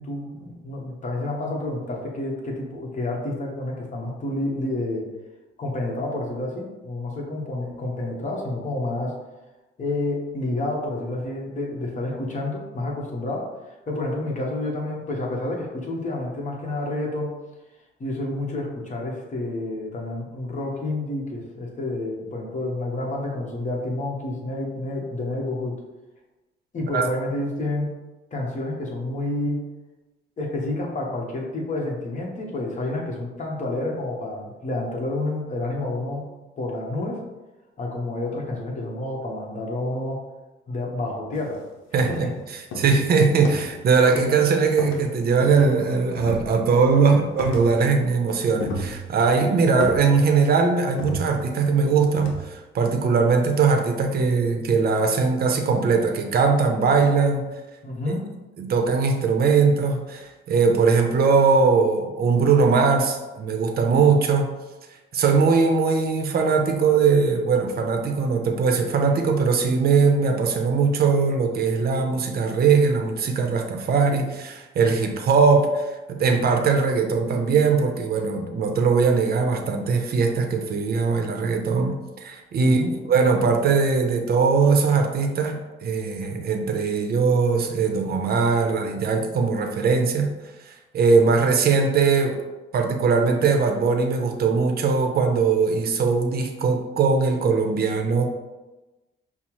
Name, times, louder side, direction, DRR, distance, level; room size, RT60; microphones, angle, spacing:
voice 1, 0.0-5.1 5.6-9.1 9.8-13.5 13.9-17.3 18.0-25.8 26.7-27.9 28.3-29.6 30.4-36.2 36.6-37.2 37.8-40.2 40.7-41.6 42.1-42.3 57.8-58.2 82.6-82.9, left 2 dB, 40° left, -1 dB, 1.0 m, -29 dB
sound 1, 41.3-41.5 42.0-42.4 42.7-43.8 44.1-44.4 44.8-45.8 46.2-46.9 47.4-48.0 48.3-49.3 49.8-50.5 51.0-51.7 52.2-52.5, left 1 dB, 90° left, 0.6 m, -33 dB
voice 2, 41.9-42.3 42.8-57.5 58.6-64.5 65.1-82.8 83.1-90.3 90.6-92.4 92.7-98.2, right 5 dB, 50° right, 4 dB, 0.6 m, -20 dB
5.3 x 2.0 x 3.0 m, 1.1 s
cardioid pair, 90°, 20 cm